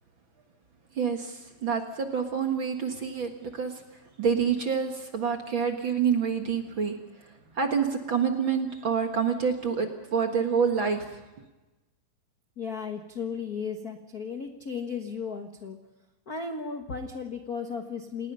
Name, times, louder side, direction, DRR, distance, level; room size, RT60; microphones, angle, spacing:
voice 1, 1.0-3.8 4.2-7.3 7.6-11.2, right 6 dB, 45° right, 5 dB, 1.8 m, -27 dB
voice 2, 12.6-15.8 16.3-18.3, left 5 dB, 70° left, 5 dB, 0.8 m, -35 dB
28.5 x 19.5 x 5.6 m, 1.1 s
omnidirectional pair, 4.1 m